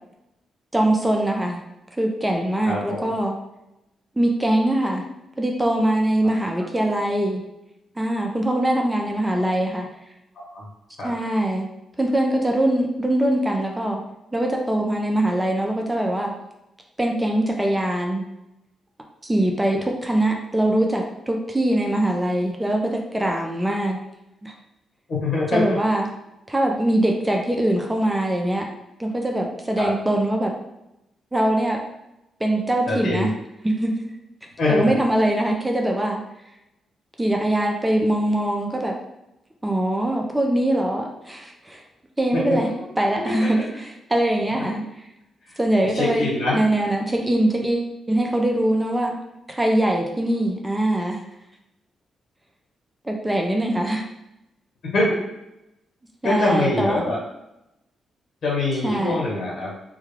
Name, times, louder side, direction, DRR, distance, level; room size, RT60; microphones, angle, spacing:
voice 1, 0.7-1.6 2.0-3.4 4.2-5.1 5.4-7.4 8.0-9.9 11.0-11.7 12.0-14.0 14.3-16.3 17.0-18.2 19.2-24.0 24.4-24.5 25.5-26.1 26.5-28.7 29.0-30.5 31.3-31.8 32.4-33.3 33.6-34.1 34.7-36.2 37.2-39.0 39.6-41.8 42.2-42.7 43.0-44.8 45.6-46.3 46.5-49.2 49.5-51.2 53.0-54.0 56.2-57.1 58.8-59.2, right 1 dB, 15° right, 1 dB, 0.4 m, -22 dB
voice 2, 2.7-3.0 6.2-6.3 10.5-10.7 11.0-11.1 25.1-25.8 29.8-29.9 32.9-33.3 34.6-35.0 42.3-42.6 43.2-43.5 45.5-45.6 45.9-46.6 54.9-55.1 56.2-57.2 58.4-59.7, left 2 dB, 60° left, -5 dB, 1.2 m, -24 dB
2.3 x 2.2 x 3.2 m, 0.89 s
supercardioid pair, 60°, 0 cm